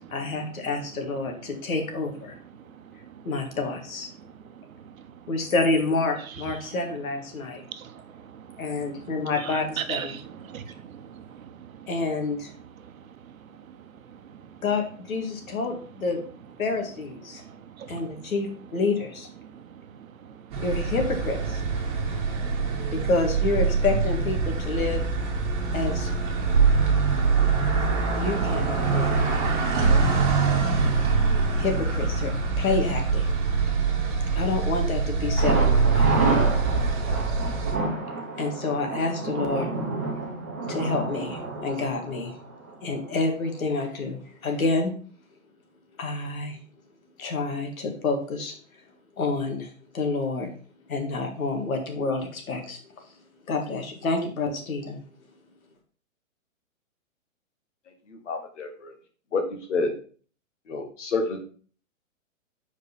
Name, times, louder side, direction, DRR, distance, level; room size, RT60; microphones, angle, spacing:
voice 1, 0.0-2.3 3.2-4.1 5.3-7.6 8.6-10.2 11.9-12.5 14.6-16.2 16.6-17.4 17.9-19.3 20.6-21.6 22.9-25.3 25.7-26.1 28.2-29.2 31.5-33.3 34.3-36.1 38.4-39.7 40.7-42.3 42.8-44.9 46.0-46.6 47.2-48.6 49.2-50.5 50.9-52.8 53.5-55.0, left 3 dB, 85° left, 1.9 m, -28 dB
voice 2, 2.7-3.2 4.2-5.2 6.7-6.8 7.5-11.9 12.8-14.6 17.3-18.3 19.4-20.6 21.8-22.9, right 8 dB, 75° right, 0.9 m, -42 dB
sound 1, 20.5-37.8, right 4 dB, 35° right, 1.5 m, -24 dB
Thunder, 35.4-43.1 43.4-43.5 43.9-44.0, right 2 dB, 10° right, 0.4 m, -29 dB
voice 3, 58.3-58.9 59.3-59.4 59.7-59.9 60.7-61.4, left 3 dB, 60° left, 1.7 m, -28 dB
4.9 x 4.7 x 5.1 m
hypercardioid pair, 170°, 41 cm